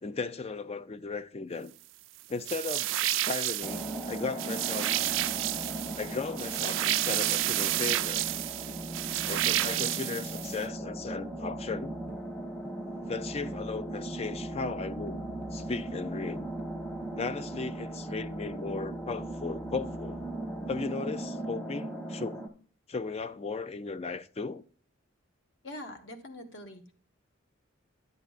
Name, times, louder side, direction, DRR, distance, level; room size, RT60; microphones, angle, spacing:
voice 1, 0.0-1.7 2.3-4.9 5.9-8.2 9.3-12.0 13.1-16.5 17.1-20.2 20.7-22.4 22.9-24.6, left 4 dB, 30° left, 0.4 m, -36 dB
sound 1, 2.5-10.6, right 15 dB, 70° right, 0.4 m, -30 dB
sound 2, 3.6-22.5, right 1 dB, 15° left, 1.0 m, -38 dB
voice 2, 25.6-26.9, left 1 dB, 65° left, 1.4 m, -43 dB
11.0 x 8.0 x 2.5 m
head